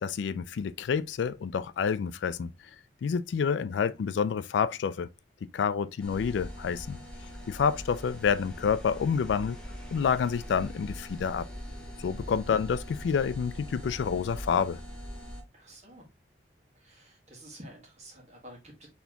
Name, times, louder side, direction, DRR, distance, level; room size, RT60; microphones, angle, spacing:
voice 1, 0.0-2.5 3.0-5.1 5.5-7.0 7.5-9.6 9.9-11.5 12.0-14.8, left 6 dB, 80° left, 0.3 m, -28 dB
sound 1, 6.0-15.4, equal, 5° left, 0.8 m, -42 dB
voice 2, 15.5-16.1 16.7-18.9, right 1 dB, 35° right, 1.6 m, -50 dB
4.3 x 3.4 x 2.9 m
head